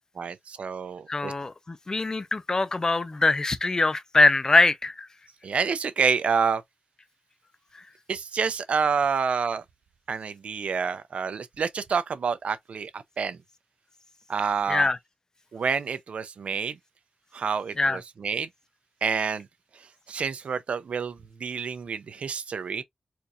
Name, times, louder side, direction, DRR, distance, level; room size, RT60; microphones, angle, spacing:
voice 1, 0.2-1.3 5.4-6.6 8.1-9.6 10.1-13.4 14.3-14.9 15.5-16.8 17.3-18.5 19.0-19.5 20.1-22.8, right 6 dB, 90° right, 0.6 m, -28 dB
voice 2, 1.1-5.1 7.7-7.8 14.7-15.0 17.8-18.0, left 3 dB, 30° left, 0.5 m, -23 dB
4.5 x 2.6 x 2.5 m
wide cardioid pair, 130°, 2 cm